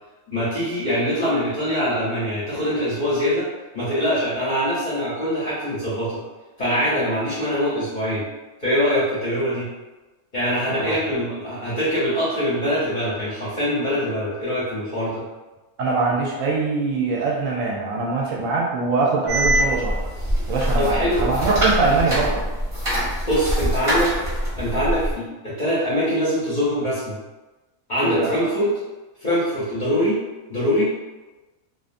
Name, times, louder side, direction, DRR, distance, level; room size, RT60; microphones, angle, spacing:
voice 1, 0.3-3.5 3.7-6.2 6.6-8.3 8.6-9.7 10.3-15.2 20.8-21.3 21.8-21.9 23.3-24.1 24.6-27.2 27.9-28.7 29.2-30.2 30.5-31.0, equal, 45° left, -9 dB, 0.6 m, -23 dB
voice 2, 15.8-20.0 20.5-22.4 28.0-28.3, right 3 dB, 70° right, -2 dB, 0.9 m, -23 dB
sound 1, 19.3-25.1, equal, 30° right, 0.9 m, -24 dB
2.5 x 2.4 x 2.4 m, 1.1 s
omnidirectional pair, 1.5 m